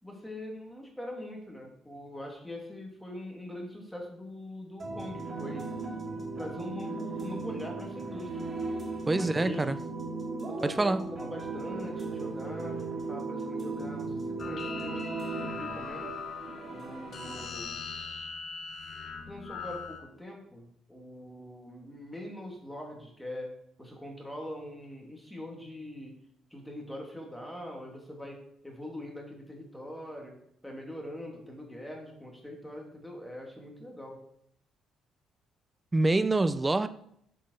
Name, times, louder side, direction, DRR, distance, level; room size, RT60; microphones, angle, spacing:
voice 1, 0.0-5.7 6.3-8.5 9.1-9.7 10.5-12.8 13.1-16.1 16.7-17.7 19.3-26.1 26.5-30.3 30.6-34.2, left 1 dB, ahead, 0 dB, 2.9 m, -42 dB
sound 1, 4.8-17.4, right 3 dB, 35° right, 2.5 m, -37 dB
voice 2, 9.1-9.8 10.6-11.0 35.9-36.9, right 2 dB, 15° right, 14 dB, 0.6 m, -26 dB
sound 2, 14.4-20.0, left 6 dB, 45° left, 1.6 m, -41 dB
8.3 x 7.9 x 6.5 m, 0.70 s
cardioid pair, 120°, 0 cm